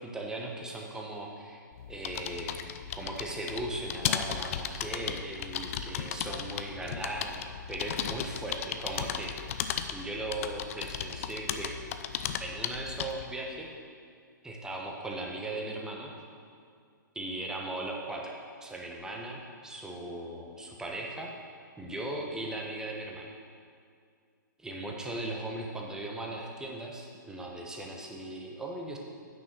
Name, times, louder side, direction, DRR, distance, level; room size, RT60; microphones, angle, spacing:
voice 1, 0.0-1.6 1.9-9.5 9.9-11.7 12.4-13.7 14.4-16.1 17.1-18.3 18.6-21.3 21.8-23.3 24.6-29.0, right 1 dB, 5° right, -1 dB, 1.1 m, -38 dB
sound 1, 1.7-13.3, left 9 dB, 45° left, 0.5 m, -36 dB
9.3 x 6.3 x 6.1 m, 2.2 s
figure-of-eight pair, 125°, 11 cm